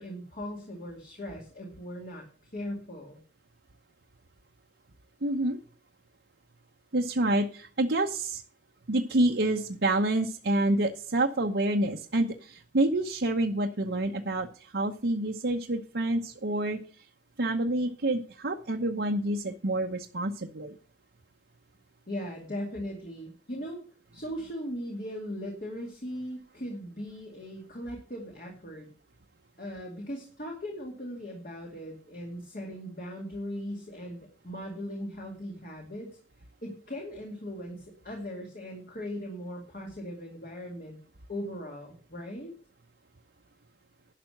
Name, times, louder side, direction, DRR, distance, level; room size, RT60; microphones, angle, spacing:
voice 1, 0.0-2.2 2.5-3.2 22.1-23.8 24.1-28.9 29.6-36.2 36.6-41.0 41.3-42.5, equal, 50° left, 0 dB, 2.3 m, -39 dB
voice 2, 5.2-5.6 6.9-8.4 8.9-16.8 17.4-20.8, right 1 dB, 80° right, 0 dB, 0.9 m, -28 dB
12.0 x 5.1 x 7.7 m, 0.41 s
head